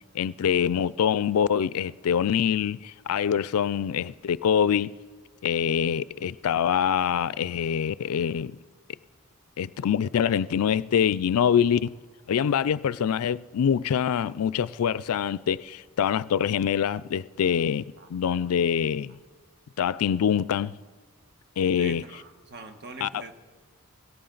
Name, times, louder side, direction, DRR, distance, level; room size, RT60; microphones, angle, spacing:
voice 1, 0.1-4.9 5.4-8.6 9.6-11.9 12.3-17.8 18.1-19.2 19.8-20.8 21.6-22.0 23.0-23.1, left 8 dB, 75° left, 0.4 m, -25 dB
voice 2, 21.8-23.3, right 3 dB, 50° right, 1.3 m, -43 dB
17.5 x 17.0 x 3.9 m
head